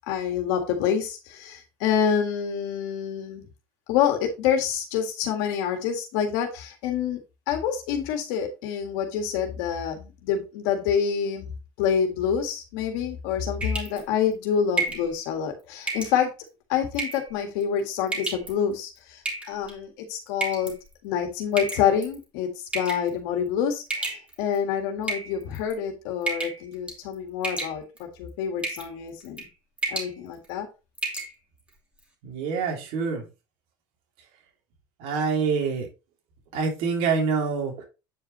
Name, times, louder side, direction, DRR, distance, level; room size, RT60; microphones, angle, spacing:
voice 1, 0.1-3.4 3.9-7.2 7.5-11.5 11.8-16.3 16.7-20.8 21.0-22.5 22.7-29.5 29.9-30.7, left 8 dB, 75° left, 4 dB, 1.8 m, -27 dB
sound 1, 13.6-14.0 14.8-15.1 15.9-16.2 16.9-17.3 18.1-18.5 19.3-19.7 20.4-20.7 21.6-22.1 22.7-23.1 23.9-24.6 25.0-25.7 26.3-26.6 26.9-27.1 27.4-28.0 28.6-28.9 29.2-29.5 29.8-30.1 30.5-30.6 31.0-31.3, right 3 dB, 10° right, 2.7 m, -30 dB
voice 2, 32.2-33.3 35.0-35.9 36.5-37.8, right 5 dB, 65° right, 1 dB, 2.9 m, -26 dB
8.7 x 5.0 x 3.1 m, 0.29 s
supercardioid pair, 125°, 11 cm